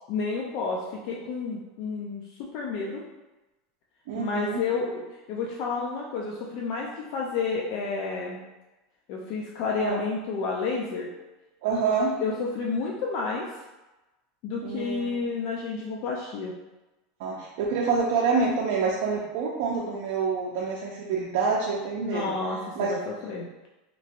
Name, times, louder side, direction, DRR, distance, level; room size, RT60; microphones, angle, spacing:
voice 1, 0.1-0.8 1.0-3.0 4.1-5.0 5.3-8.4 9.1-11.1 12.2-13.5 14.4-16.5 22.0-23.5, left 4 dB, 55° left, -2 dB, 0.4 m, -30 dB
voice 2, 4.1-4.6 9.8-10.0 11.6-12.1 14.6-15.1 17.2-22.3 22.8-22.9, right 5 dB, 65° right, -3 dB, 0.4 m, -27 dB
2.9 x 2.7 x 2.5 m, 1.1 s
supercardioid pair, 145°, 0 cm